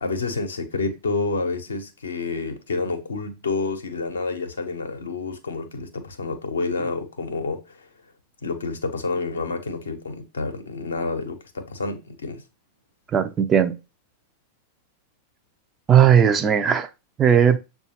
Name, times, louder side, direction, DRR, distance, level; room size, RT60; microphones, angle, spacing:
voice 1, 0.0-7.9 8.4-12.4, left 3 dB, 70° left, 0.7 m, -29 dB
voice 2, 13.1-13.8 15.9-16.9 17.2-17.6, right 8 dB, 25° right, 0.4 m, -17 dB
6.7 x 2.3 x 2.8 m
figure-of-eight pair, 90°, 0 cm